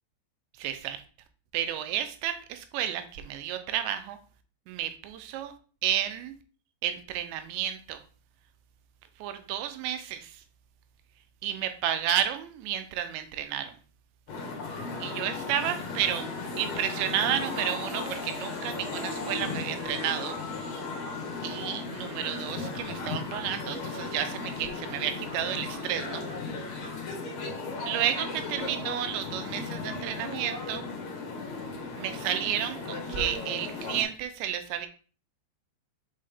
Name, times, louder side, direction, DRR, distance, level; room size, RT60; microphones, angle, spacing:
voice 1, 0.6-1.0 1.5-4.2 4.7-5.5 5.8-6.3 6.8-8.0 9.2-10.4 11.4-13.8 15.0-16.3 16.6-20.4 21.1-21.2 21.4-26.2 27.9-30.8 32.0-34.9, right 10 dB, 80° right, 9 dB, 2.8 m, -31 dB
sound 1, 14.3-34.0, left 3 dB, 55° left, 2.1 m, -36 dB
7.6 x 4.3 x 3.5 m, 0.39 s
omnidirectional pair, 5.3 m